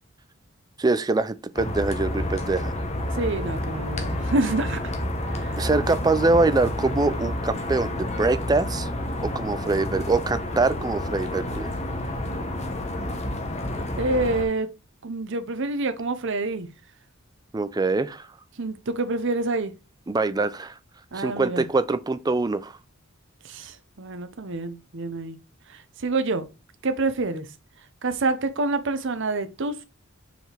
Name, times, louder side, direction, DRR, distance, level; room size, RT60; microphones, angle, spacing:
voice 1, 0.8-2.7 5.6-8.9 9.2-11.7 17.5-18.3 20.1-20.8 21.1-22.8, right 3 dB, 20° right, 0.4 m, -24 dB
sound 1, 1.5-14.4, left 1 dB, 30° left, 1.0 m, -29 dB
voice 2, 3.1-4.9 5.3-5.6 14.0-14.7 15.0-16.7 18.6-19.7 21.1-21.6 23.4-25.4 25.7-26.5 26.8-27.5 28.0-29.8, right 2 dB, 60° right, 0.8 m, -27 dB
5.9 x 4.8 x 3.4 m
head